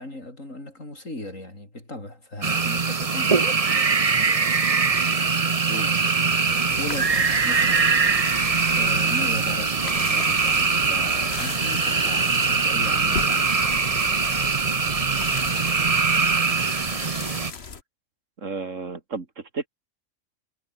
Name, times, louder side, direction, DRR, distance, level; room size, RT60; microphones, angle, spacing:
voice 1, 0.0-4.0 6.8-7.9 8.5-13.6, left 1 dB, 75° left, 8.2 m, -37 dB
sound 1, 2.4-17.5, right 5 dB, 30° right, 0.9 m, -22 dB
sound 2, 6.4-17.8, left 5 dB, 55° left, 1.7 m, -37 dB
voice 2, 18.4-19.7, right 4 dB, 70° right, 2.8 m, -32 dB
omnidirectional pair, 1.4 m